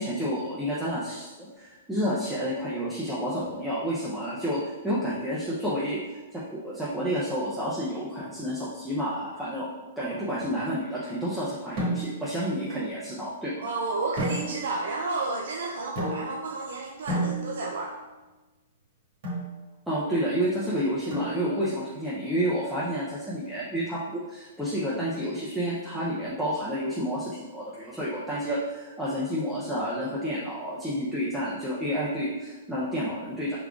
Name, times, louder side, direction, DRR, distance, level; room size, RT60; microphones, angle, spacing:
voice 1, 0.0-6.0 6.3-9.7 10.0-13.7 19.9-33.6, equal, 5° right, -9 dB, 0.5 m, -30 dB
sound 1, 11.8-12.4 14.2-14.9 16.0-16.6 17.1-17.9 19.2-19.6 21.1-21.7, right 1 dB, 40° right, 1.4 m, -32 dB
voice 2, 13.6-17.9, right 3 dB, 80° right, -1 dB, 0.5 m, -31 dB
4.7 x 3.7 x 2.4 m, 1.2 s
hypercardioid pair, 160°, 0 cm